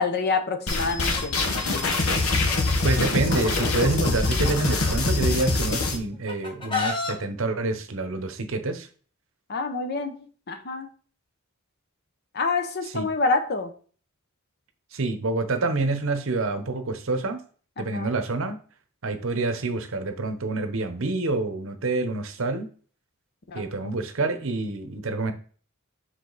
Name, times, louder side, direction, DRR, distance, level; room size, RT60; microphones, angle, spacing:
voice 1, 0.0-1.3 9.5-10.9 12.3-13.7 17.8-18.1 23.5-23.6, left 4 dB, 50° left, 7 dB, 0.8 m, -27 dB
sound 1, 0.7-6.0, left 3 dB, 75° left, 1.0 m, -24 dB
Chicken rooster, 1.2-2.9 3.3-5.9 6.3-7.1, left 4 dB, 25° left, 1.2 m, -32 dB
voice 2, 2.8-8.9 12.8-13.1 14.9-17.4 17.8-18.6 19.0-22.7 23.5-25.3, right 3 dB, 65° right, 8 dB, 0.8 m, -27 dB
6.1 x 4.9 x 4.0 m, 0.43 s
head